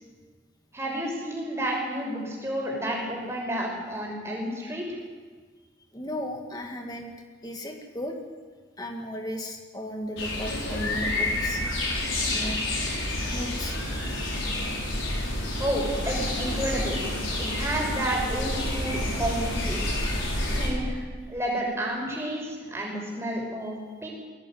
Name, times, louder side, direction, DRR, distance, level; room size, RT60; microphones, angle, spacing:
voice 1, 0.7-4.8 15.6-17.0 17.4-19.9 20.6-21.0 21.3-24.1, right 1 dB, 15° right, -1 dB, 5.9 m, -30 dB
voice 2, 5.9-7.1 7.4-8.2 8.8-11.7 12.3-12.6 12.9-13.8, left 1 dB, 20° left, 3 dB, 2.2 m, -35 dB
sound 1, 10.2-20.7, left 1 dB, 90° left, 6.2 m, -29 dB
22.0 x 17.0 x 9.3 m, 1.5 s
head